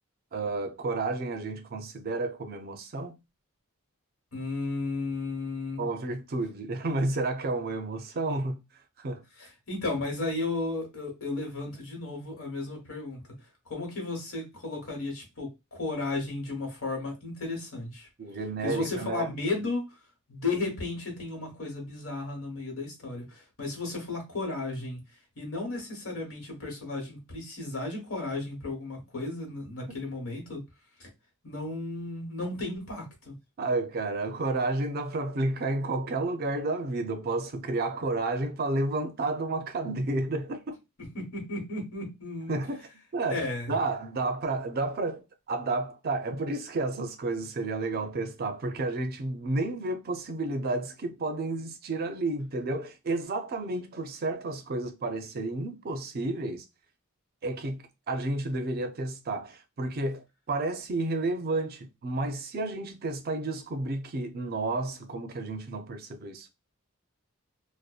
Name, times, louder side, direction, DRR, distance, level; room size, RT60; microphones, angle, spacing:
voice 1, 0.3-3.2 5.8-8.6 9.0-9.2 18.2-19.3 33.6-40.8 42.5-56.6 57.4-66.5, right 2 dB, 45° right, 0.4 m, -31 dB
voice 2, 4.3-5.9 9.4-13.2 13.7-18.1 18.6-19.8 20.3-25.0 25.4-30.6 31.0-31.1 31.4-33.3 41.0-42.5 43.3-43.7, left 2 dB, 85° left, 1.2 m, -34 dB
2.6 x 2.1 x 2.3 m
head